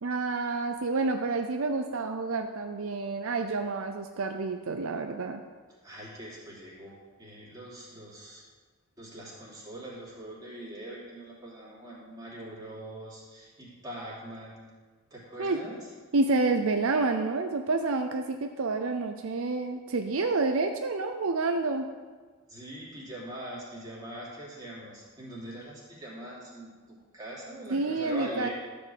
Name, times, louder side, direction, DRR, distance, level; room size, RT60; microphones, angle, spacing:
voice 1, 0.0-5.4 15.4-15.6 16.1-21.9 27.7-28.5, right 3 dB, 65° right, 6 dB, 0.6 m, -29 dB
voice 2, 5.8-6.9 7.2-8.4 9.0-14.6 15.1-15.9 22.5-28.5, right 1 dB, 15° right, -6 dB, 3.1 m, -42 dB
13.0 x 5.2 x 7.8 m, 1.5 s
head